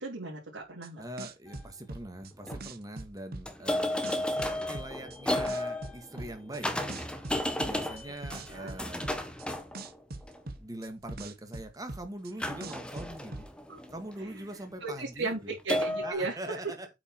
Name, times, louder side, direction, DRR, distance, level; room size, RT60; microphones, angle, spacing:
voice 1, 0.0-1.0 8.5-8.8 13.7-13.8 14.8-16.4, right 3 dB, 70° right, 3.7 m, -35 dB
sound 1, 0.8-0.9 1.2-3.7 4.0-6.6 6.9-9.5 9.7-12.3 12.6-13.5, right 2 dB, 50° right, 1.1 m, -41 dB
voice 2, 1.0-6.7 7.1-7.3 7.6-9.0 10.6-13.5 13.9-15.6 16.0-16.9, right 1 dB, 20° right, 2.0 m, -43 dB
sound 2, 1.5-1.6 2.2-2.6 3.5-10.4 12.4-14.4 15.7-16.1, left 1 dB, 5° left, 1.2 m, -33 dB
8.3 x 5.6 x 4.6 m
head